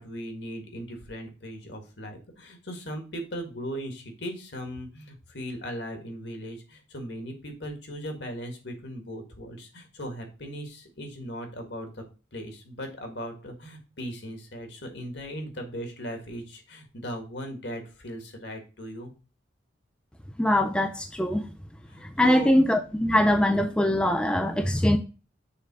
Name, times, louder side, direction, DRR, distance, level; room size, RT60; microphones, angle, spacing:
voice 1, 0.0-12.0 12.3-19.1 21.9-22.5, equal, 60° left, 1.7 m, -38 dB
voice 2, 20.4-21.4 22.0-25.0, left 1 dB, 5° left, 0.4 m, -22 dB
6.7 x 3.5 x 4.6 m
head